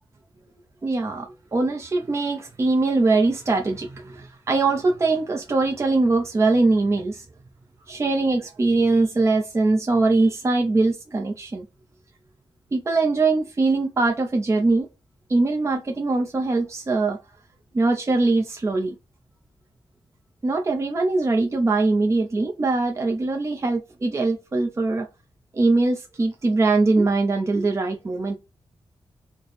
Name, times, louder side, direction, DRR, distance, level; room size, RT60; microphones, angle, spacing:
voice 1, 0.8-7.2 7.9-11.7 12.7-14.9 15.3-17.2 17.7-18.9 20.4-25.1 25.5-28.4, right 3 dB, 30° right, 0.5 m, -22 dB
3.3 x 2.1 x 4.0 m
wide cardioid pair, 95°, 9 cm